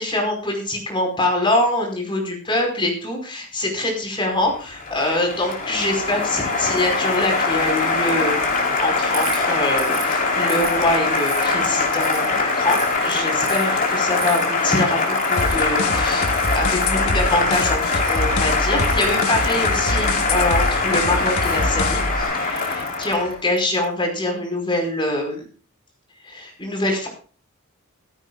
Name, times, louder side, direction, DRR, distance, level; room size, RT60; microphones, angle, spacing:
voice 1, 0.0-8.5 8.8-12.8 13.0-25.5 26.2-27.1, left 1 dB, 25° left, 1 dB, 5.2 m, -24 dB
Applause, 4.5-23.4, left 3 dB, 40° left, 4.1 m, -22 dB
Ratchet pawl, 9.1-9.4 9.8-10.1 10.5-11.4 11.9-12.3 12.7-13.0 13.4-13.7 14.2-14.4 15.0-15.5 16.3-16.9 17.5-18.3 18.8-19.5 20.3-20.6 21.4-21.6 22.4-23.8, right 8 dB, 75° right, 6.1 m, -35 dB
sound 1, 15.4-22.2, left 2 dB, 75° left, 1.6 m, -26 dB
17.0 x 15.5 x 2.4 m, 0.38 s
head